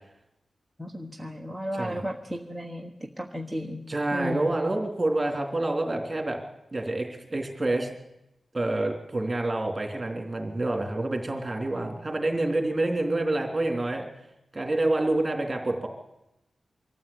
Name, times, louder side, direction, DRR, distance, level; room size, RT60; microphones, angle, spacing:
voice 1, 0.8-3.8 4.1-4.5, equal, 5° left, 2 dB, 1.4 m, -34 dB
voice 2, 3.9-6.4 6.7-7.9 8.5-14.1 14.5-15.9, right 2 dB, 20° right, 4 dB, 3.3 m, -27 dB
23.0 x 14.0 x 8.7 m, 0.89 s
wide cardioid pair, 160°, 0 cm